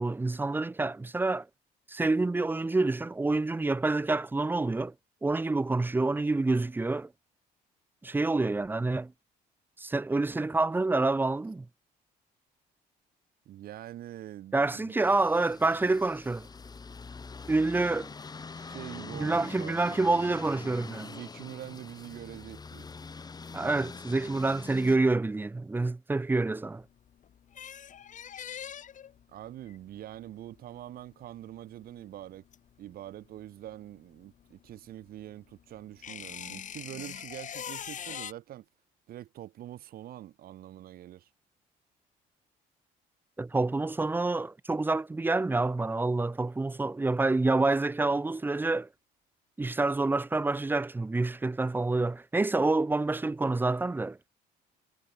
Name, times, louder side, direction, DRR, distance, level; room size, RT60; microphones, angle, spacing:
voice 1, 0.0-1.5 1.9-4.9 5.2-7.1 8.0-9.1 9.8-11.7 14.5-16.5 17.5-18.1 19.1-21.1 23.5-26.8 43.4-48.9 49.6-54.2, right 3 dB, 10° right, 0.7 m, -27 dB
voice 2, 13.4-14.9 18.5-19.8 20.9-22.9 29.3-32.4 32.8-38.6 39.1-41.3, right 13 dB, 60° right, 1.3 m, -44 dB
sound 1, 15.0-25.0, left 4 dB, 25° left, 1.6 m, -44 dB
sound 2, 26.8-33.4 33.7-38.3, left 9 dB, 50° left, 2.4 m, -43 dB
cardioid pair, 110°, 17 cm